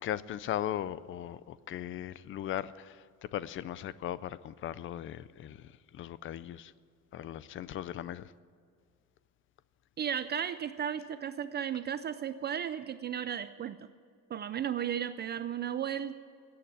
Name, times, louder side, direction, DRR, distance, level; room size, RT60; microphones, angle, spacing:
voice 1, 0.0-3.0 3.3-5.7 5.9-6.7 7.1-8.3, left 11 dB, 40° left, 18 dB, 0.4 m, -38 dB
voice 2, 10.0-13.9 14.3-16.2, right 9 dB, 30° right, 12 dB, 0.4 m, -34 dB
17.0 x 8.6 x 9.8 m, 2.2 s
cardioid pair, 170°, 33 cm